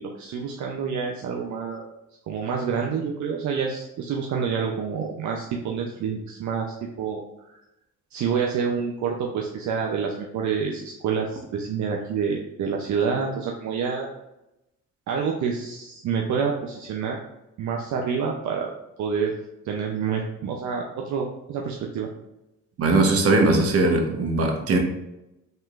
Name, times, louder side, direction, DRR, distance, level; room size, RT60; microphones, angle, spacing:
voice 1, 0.0-1.9 2.3-7.6 8.1-14.1 15.1-17.2 17.6-18.7 19.0-19.3 19.6-22.1, right 6 dB, 70° right, 0 dB, 0.6 m, -28 dB
voice 2, 22.8-24.8, right 2 dB, 50° right, 2 dB, 1.0 m, -20 dB
5.6 x 3.7 x 2.4 m, 0.90 s
cardioid pair, 90°, 30 cm